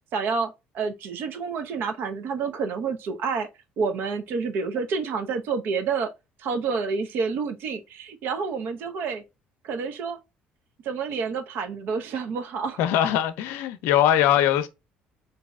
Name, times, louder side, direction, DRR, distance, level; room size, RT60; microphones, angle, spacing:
voice 1, 0.1-3.5 3.8-6.1 6.4-9.2 9.6-10.2 10.8-12.8, right 5 dB, 65° right, 0.6 m, -29 dB
voice 2, 12.8-14.7, left 11 dB, 85° left, 0.5 m, -21 dB
4.1 x 2.7 x 2.3 m
cardioid pair, 95°, 4 cm